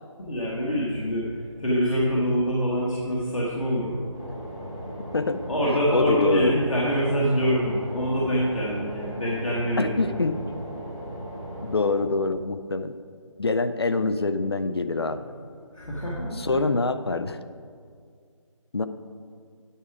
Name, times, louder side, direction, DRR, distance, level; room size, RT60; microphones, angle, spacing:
voice 1, 0.2-1.3 1.6-4.1 5.5-10.2 15.7-16.6, equal, 80° left, -6 dB, 1.6 m, -25 dB
sound 1, 4.1-12.0, equal, 10° left, 0.6 m, -37 dB
voice 2, 5.9-6.5 9.8-10.4 11.6-12.9 13.4-15.2 16.3-17.4 18.7-18.9, left 3 dB, 50° left, 11 dB, 0.4 m, -25 dB
9.7 x 4.8 x 4.8 m, 2.1 s
figure-of-eight pair, 180°, 17 cm